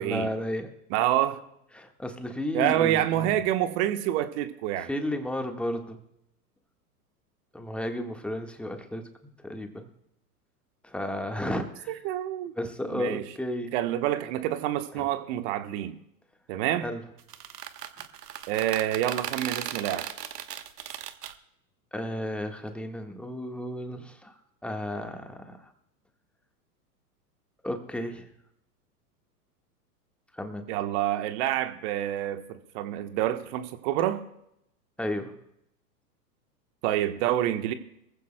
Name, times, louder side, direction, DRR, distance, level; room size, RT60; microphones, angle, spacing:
voice 1, 0.0-0.7 1.7-3.3 4.8-6.0 7.5-9.9 10.8-12.0 12.6-13.7 15.0-15.1 16.8-17.0 21.9-25.7 27.6-28.3 30.3-30.7 35.0-35.4, left 1 dB, ahead, 5 dB, 1.5 m, -33 dB
voice 2, 0.9-1.4 2.5-4.9 12.0-12.6 12.9-13.2 13.7-16.0 16.5-16.9 18.5-20.1 30.7-34.2 36.8-37.7, right 12 dB, 45° right, 9 dB, 1.2 m, -27 dB
sound 1, 17.2-21.3, right 9 dB, 75° right, 1.2 m, -36 dB
23.5 x 15.5 x 2.2 m, 0.78 s
hypercardioid pair, 105°, 48 cm